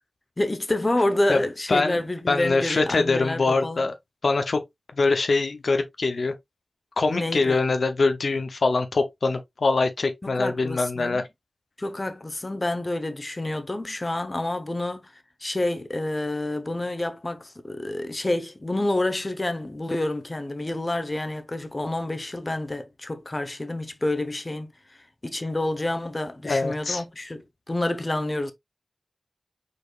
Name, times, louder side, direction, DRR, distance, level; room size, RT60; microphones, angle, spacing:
voice 1, 0.4-3.9 7.1-7.6 10.2-11.2 11.8-15.1 15.4-24.7 25.2-28.5, left 1 dB, 35° left, 0.9 m, -28 dB
voice 2, 2.3-3.9 4.2-4.6 5.0-6.3 7.0-11.2 26.4-27.0, left 3 dB, 80° left, 0.7 m, -23 dB
5.1 x 4.2 x 2.4 m
wide cardioid pair, 55°, 0 cm